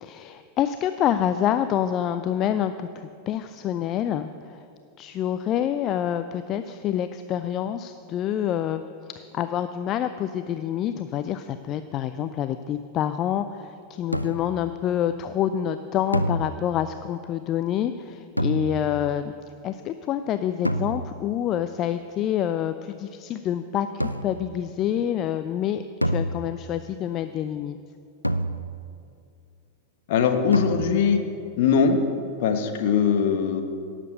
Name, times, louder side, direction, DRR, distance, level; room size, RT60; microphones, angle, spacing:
voice 1, 0.0-4.6 5.0-8.8 9.3-19.3 19.6-27.8, left 10 dB, 35° left, 10 dB, 0.4 m, -27 dB
sound 1, 14.1-14.7 16.1-17.0 18.4-19.1 20.7-21.4 24.0-24.6 26.0-26.9 28.2-29.0 30.5-31.2, right 1 dB, 90° left, 0.4 m, -28 dB
voice 2, 30.1-31.3 31.6-32.0 32.4-33.6, left 6 dB, 50° left, 6 dB, 1.3 m, -21 dB
17.5 x 7.5 x 6.6 m, 2.4 s
figure-of-eight pair, 90°, 0 cm